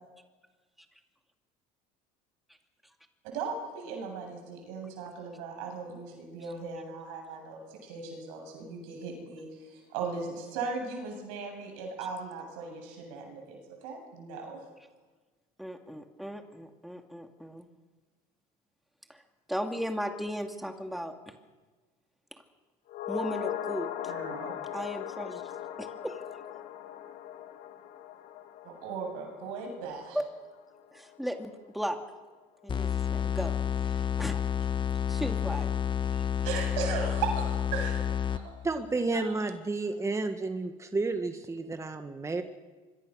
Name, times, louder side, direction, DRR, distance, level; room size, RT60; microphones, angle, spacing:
voice 1, 3.2-14.6 24.1-24.6 28.6-30.2 36.4-37.5 37.7-38.0 38.3-38.5 39.1-39.3, right 5 dB, 85° right, 3 dB, 8.0 m, -37 dB
voice 2, 15.6-17.7 19.1-19.2 19.5-21.3 23.1-23.9 24.7-25.5 25.8-26.2 30.1-30.2 30.9-32.0 32.6-34.4 35.1-35.7, equal, ahead, 5 dB, 2.4 m, -36 dB
sound 1, 22.9-31.4 31.6-31.7, left 11 dB, 65° left, 2.1 m, -39 dB
sound 2, 32.7-38.7, left 8 dB, 30° left, 1.3 m, -30 dB
voice 3, 38.6-42.4, right 3 dB, 15° right, 7 dB, 1.8 m, -31 dB
25.5 x 23.0 x 6.5 m, 1.3 s
supercardioid pair, 95°, 17 cm